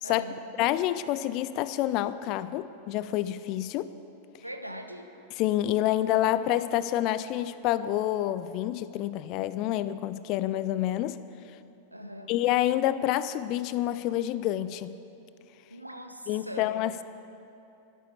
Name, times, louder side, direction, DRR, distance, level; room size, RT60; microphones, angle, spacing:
voice 1, 0.0-0.4 4.4-5.1 11.9-12.3 15.7-16.7, equal, 85° right, 6 dB, 1.0 m, -41 dB
voice 2, 0.6-3.9 5.3-11.2 12.3-14.9 16.3-17.0, left 13 dB, 40° left, 14 dB, 0.5 m, -28 dB
12.0 x 11.5 x 7.4 m, 2.8 s
figure-of-eight pair, 90°, 0 cm